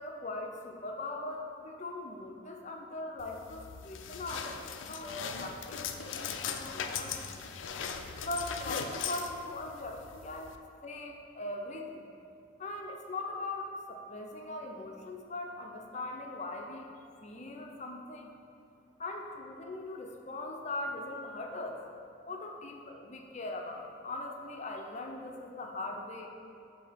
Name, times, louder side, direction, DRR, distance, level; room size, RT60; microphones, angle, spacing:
voice 1, 0.0-7.5 8.2-10.5 10.8-12.0 12.6-16.9 17.2-18.4 19.0-21.8 22.3-26.3, left 2 dB, 35° left, 1 dB, 0.6 m, -40 dB
sound 1, 3.2-10.6, left 6 dB, 85° left, 0.4 m, -39 dB
8.0 x 2.8 x 5.7 m, 2.6 s
head